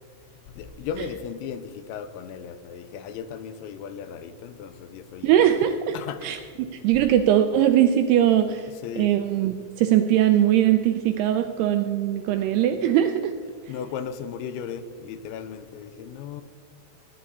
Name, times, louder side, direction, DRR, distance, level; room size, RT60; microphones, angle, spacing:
voice 1, 0.6-5.4 5.9-6.3 8.7-9.2 13.7-16.4, left 7 dB, 90° left, 3.0 m, -36 dB
voice 2, 5.2-6.0 6.2-8.7 9.0-13.3, right 11 dB, 85° right, 2.3 m, -21 dB
21.0 x 9.6 x 4.1 m
omnidirectional pair, 5.3 m